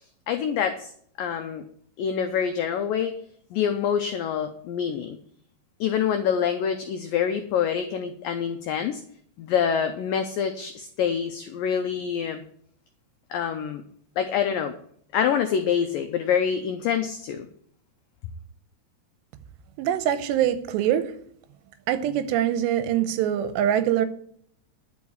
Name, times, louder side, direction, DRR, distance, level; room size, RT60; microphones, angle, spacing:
voice 1, 0.3-0.9 1.2-1.6 2.0-3.2 3.5-5.2 5.8-9.0 9.4-12.4 13.3-13.8 14.2-14.7 15.1-17.5, left 8 dB, 90° left, 1.9 m, -26 dB
voice 2, 19.8-21.1 21.9-24.1, right 10 dB, 90° right, 3.0 m, -23 dB
11.5 x 5.2 x 8.5 m
omnidirectional pair, 5.0 m